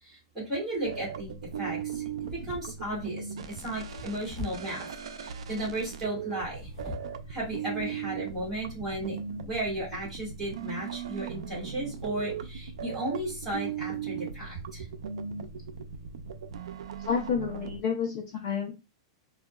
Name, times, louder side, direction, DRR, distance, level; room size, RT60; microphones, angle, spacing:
voice 1, 0.0-1.3 1.6-4.9 5.1-6.7 7.3-9.2 9.4-14.9, right 1 dB, 5° right, -7 dB, 1.6 m, -35 dB
sound 1, 0.7-1.1 2.1-3.0 3.9-4.8 6.4-7.2 7.8-7.9 8.4-8.6, left 3 dB, 15° left, 1.6 m, -43 dB
sound 2, 0.8-17.8, right 7 dB, 80° right, 0.4 m, -38 dB
voice 2, 17.1-18.7, left 6 dB, 40° left, 0 dB, 0.7 m, -29 dB
3.7 x 2.1 x 2.2 m, 0.27 s
supercardioid pair, 180°, 3 cm